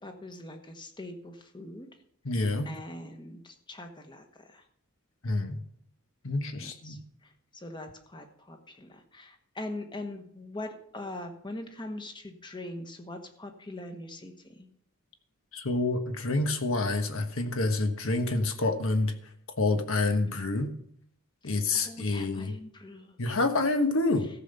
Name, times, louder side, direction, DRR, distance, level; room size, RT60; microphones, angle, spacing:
voice 1, 0.0-1.9 2.6-4.6 6.8-7.0 7.6-14.3 21.8-23.2, left 1 dB, 20° left, 5 dB, 1.2 m, -42 dB
voice 2, 2.2-2.7 5.2-5.6 6.2-7.0 15.5-19.1 19.6-20.7 21.4-22.5 23.2-24.3, left 2 dB, 65° left, 7 dB, 1.3 m, -27 dB
14.0 x 5.7 x 6.7 m, 0.68 s
head